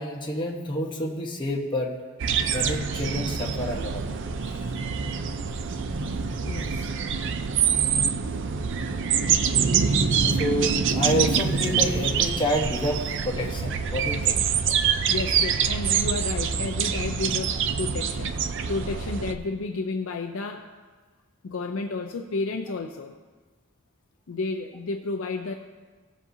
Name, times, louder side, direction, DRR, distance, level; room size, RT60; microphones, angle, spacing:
voice 1, 0.0-1.9 2.5-4.0 4.5-4.7 7.9-8.0 10.3-14.4, equal, 20° left, -2 dB, 1.1 m, -29 dB
sound 1, 2.2-19.3, right 6 dB, 55° right, 0.5 m, -25 dB
voice 2, 6.2-6.9 15.1-18.4 18.7-20.7 21.4-23.1 24.3-25.5, left 3 dB, 65° left, 4 dB, 0.5 m, -31 dB
17.5 x 7.4 x 2.7 m, 1.4 s
head